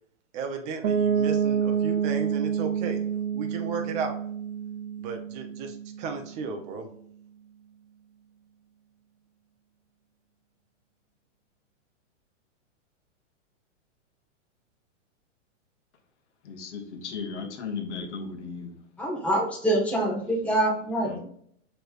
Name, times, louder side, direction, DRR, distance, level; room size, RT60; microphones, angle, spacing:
voice 1, 0.3-3.0 3.3-4.2 5.0-6.9, right 5 dB, 20° right, 4 dB, 0.5 m, -34 dB
Piano, 0.8-6.5, right 8 dB, 75° right, 0.9 m, -28 dB
voice 2, 16.4-18.7 21.0-21.2, left 5 dB, 65° left, 3 dB, 1.2 m, -36 dB
voice 3, 19.0-21.2, right 1 dB, 5° left, -4 dB, 1.2 m, -25 dB
6.3 x 3.3 x 2.4 m, 0.65 s
hypercardioid pair, 150°, 38 cm